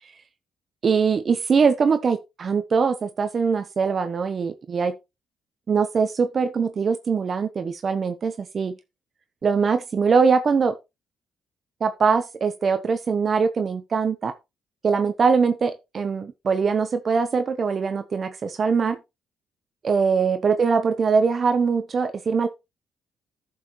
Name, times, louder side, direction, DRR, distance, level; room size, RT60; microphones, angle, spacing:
voice 1, 0.8-4.9 5.7-8.8 9.4-10.7 11.8-14.3 14.8-19.0 19.8-22.5, right 5 dB, 45° right, 0.9 m, -22 dB
11.0 x 6.7 x 3.1 m
cardioid pair, 90°, 0 cm